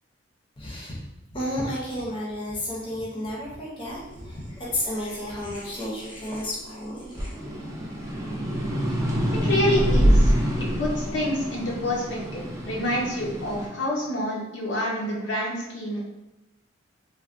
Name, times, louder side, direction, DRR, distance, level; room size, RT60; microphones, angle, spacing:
voice 1, 0.6-1.0 1.3-7.3, left 1 dB, 25° left, -5 dB, 0.6 m, -32 dB
sound 1, 4.0-6.6 7.0-13.7, equal, 15° right, 0.4 m, -25 dB
voice 2, 9.4-16.0, equal, 70° left, -3 dB, 0.7 m, -28 dB
3.2 x 2.2 x 2.5 m, 0.92 s
head